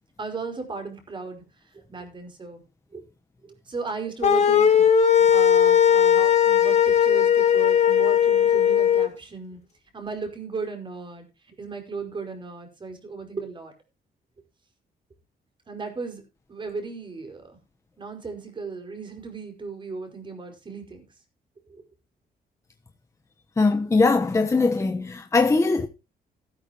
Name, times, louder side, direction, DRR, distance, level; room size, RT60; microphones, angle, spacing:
voice 1, 0.2-1.4 1.9-2.6 2.9-3.0 3.4-4.9 5.3-9.6 9.9-11.2 11.6-13.7 15.7-16.2 16.5-17.6 18.0-21.0 21.7-21.8, right 4 dB, 30° right, 5.4 m, -36 dB
sound 1, 4.2-9.1, left 8 dB, 45° left, 2.5 m, -18 dB
voice 2, 23.6-25.9, left 3 dB, 20° left, 1.1 m, -21 dB
15.5 x 13.0 x 3.0 m
cardioid pair, 140°, 17 cm